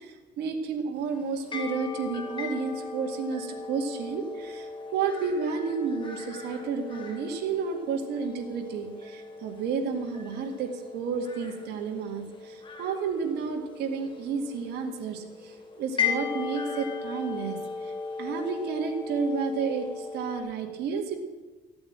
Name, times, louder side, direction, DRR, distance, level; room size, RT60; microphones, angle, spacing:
voice 1, 0.0-21.2, right 5 dB, 75° right, 2 dB, 2.2 m, -31 dB
sound 1, 1.0-20.4, left 5 dB, 30° left, 3.3 m, -37 dB
14.5 x 8.6 x 8.7 m, 1.3 s
cardioid pair, 110°, 17 cm